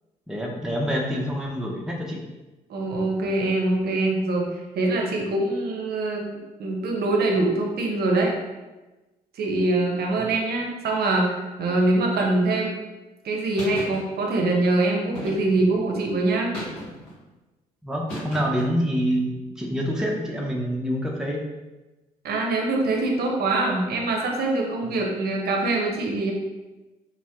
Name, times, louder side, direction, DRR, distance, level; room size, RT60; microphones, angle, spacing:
voice 1, 0.3-2.2 10.2-10.3 17.8-21.4, equal, 5° right, -1 dB, 0.5 m, -26 dB
voice 2, 2.7-4.5 4.7-6.3 6.6-8.3 9.3-12.8 13.2-16.5 22.2-26.3, right 2 dB, 55° right, 0 dB, 0.6 m, -23 dB
sound 1, 13.6-14.0 15.1-15.7 16.5-17.1 18.1-18.7, equal, 80° left, 0.9 m, -35 dB
2.5 x 2.1 x 3.3 m, 1.1 s
hypercardioid pair, 45°, 20 cm